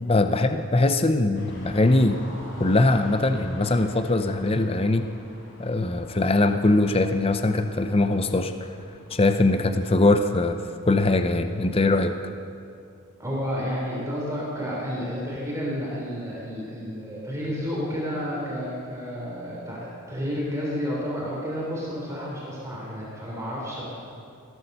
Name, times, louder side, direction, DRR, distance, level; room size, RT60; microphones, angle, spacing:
voice 1, 0.0-2.2 2.6-5.0 5.6-8.5 9.1-10.6 10.9-12.1, left 2 dB, 25° left, 8 dB, 0.6 m, -21 dB
sound 1, 1.3-12.2, left 1 dB, 60° left, 3.3 m, -46 dB
voice 2, 13.2-23.8, equal, 15° right, -5 dB, 3.4 m, -31 dB
16.0 x 12.5 x 6.7 m, 2.5 s
head